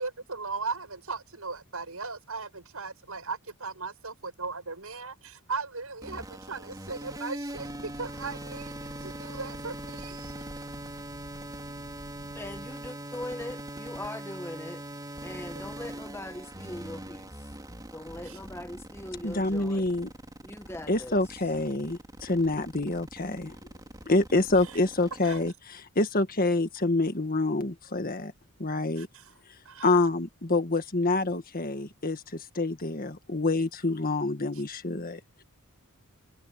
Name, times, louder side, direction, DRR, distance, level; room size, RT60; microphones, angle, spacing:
voice 1, 0.0-10.5 18.2-18.4 24.6-24.8 25.2-25.4 29.0-29.3 29.6-29.9 34.5-34.6, right 4 dB, 75° right, 6.7 m, -38 dB
sound 1, 6.0-25.5, right 1 dB, 20° right, 4.0 m, -41 dB
Breathing / Train, 7.4-12.9, right 1 dB, 60° right, 5.5 m, -50 dB
voice 2, 12.3-14.8 15.2-17.5 17.9-19.9 20.4-21.2, left 1 dB, 10° left, 1.2 m, -40 dB
voice 3, 19.2-20.1 20.9-23.5 24.1-28.3 28.6-29.1 29.8-35.4, left 2 dB, 40° left, 1.7 m, -27 dB
head